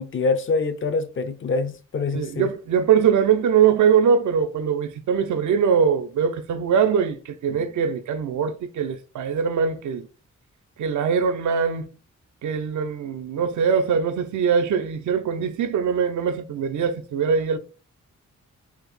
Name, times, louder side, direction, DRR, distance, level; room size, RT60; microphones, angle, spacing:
voice 1, 0.0-2.5 7.5-7.7, left 4 dB, 45° left, 0.4 m, -25 dB
voice 2, 2.1-10.1 10.8-11.9 12.4-17.6, right 7 dB, 80° right, 0.5 m, -22 dB
3.5 x 2.0 x 3.1 m
cardioid pair, 95°, 29 cm